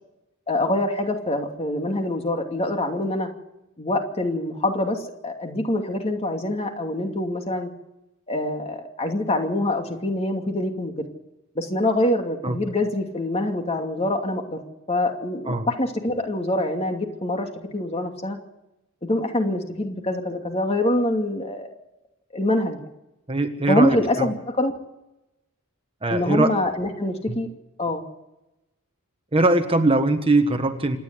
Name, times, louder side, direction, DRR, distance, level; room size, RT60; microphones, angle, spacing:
voice 1, 0.5-3.3 3.8-7.7 8.3-11.1 11.6-14.6 14.9-18.4 19.0-21.7 22.3-22.9 23.7-24.7 26.1-27.5 27.8-28.0, left 1 dB, 30° left, 4 dB, 2.6 m, -25 dB
voice 2, 23.3-24.3 26.0-26.5 27.3-27.4 29.3-31.0, right 2 dB, 25° right, 7 dB, 1.4 m, -21 dB
27.0 x 10.5 x 9.6 m, 0.94 s
head